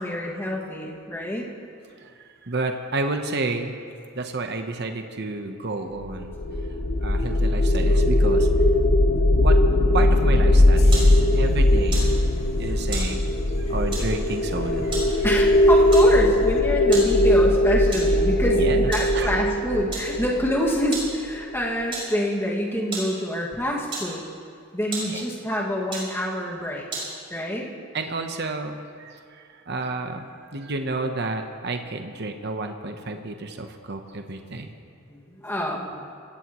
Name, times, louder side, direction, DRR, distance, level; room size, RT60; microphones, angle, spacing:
voice 1, 0.0-1.4 15.2-18.6 18.9-24.3 24.7-26.9 27.3-27.7 35.1-36.0, equal, 10° left, -3 dB, 2.0 m, -26 dB
voice 2, 2.0-3.8 4.2-6.4 7.0-8.5 9.3-9.6 9.9-12.1 12.6-13.3 13.6-15.2 18.5-19.3 25.1-25.2 27.9-34.7, right 2 dB, 50° right, 5 dB, 1.0 m, -30 dB
sound 1, 6.1-21.3, left 1 dB, 50° left, 1.0 m, -19 dB
sound 2, 10.8-16.6, equal, 75° left, 2.1 m, -35 dB
sound 3, 10.8-27.4, right 2 dB, 25° right, 5.3 m, -38 dB
25.5 x 17.0 x 3.1 m, 2.3 s
head